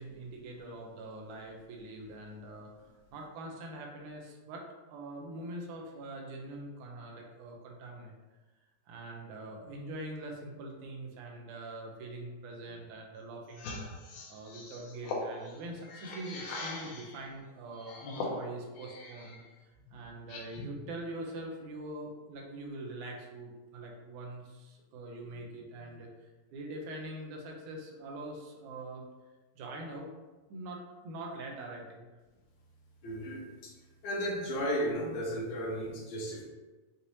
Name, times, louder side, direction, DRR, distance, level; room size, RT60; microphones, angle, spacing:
voice 1, 0.0-2.7 3.1-4.7 4.9-8.1 8.9-13.6 14.3-19.4 19.9-29.0 29.6-30.1 30.5-32.1, right 2 dB, 85° right, 0 dB, 2.1 m, -43 dB
sound 1, 13.5-17.2 17.7-19.4 19.8-20.8, left 2 dB, 85° left, 2.2 m, -41 dB
voice 2, 33.0-33.7 34.0-36.4, equal, 70° left, -3 dB, 2.1 m, -34 dB
6.5 x 2.7 x 2.8 m, 1.2 s
omnidirectional pair, 3.5 m